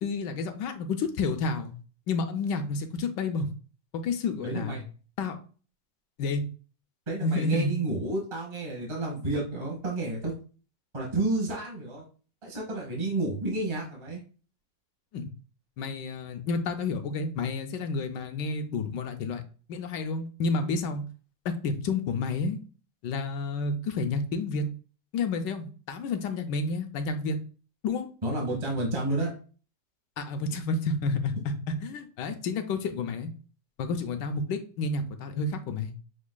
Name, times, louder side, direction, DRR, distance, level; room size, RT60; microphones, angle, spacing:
voice 1, 0.0-1.7 2.1-3.5 4.0-4.8 5.2-5.4 6.2-6.5 7.2-7.7 15.1-15.3 15.8-19.4 19.7-21.0 21.4-22.6 23.0-24.7 25.1-27.4 27.8-28.1 30.2-33.3 33.8-35.9, left 3 dB, 75° left, 7 dB, 1.2 m, -30 dB
voice 2, 4.3-4.8 7.1-10.3 10.9-12.0 12.4-14.2 28.2-29.3, right 2 dB, 20° right, -2 dB, 1.1 m, -30 dB
6.4 x 3.1 x 2.2 m, 0.38 s
omnidirectional pair, 2.0 m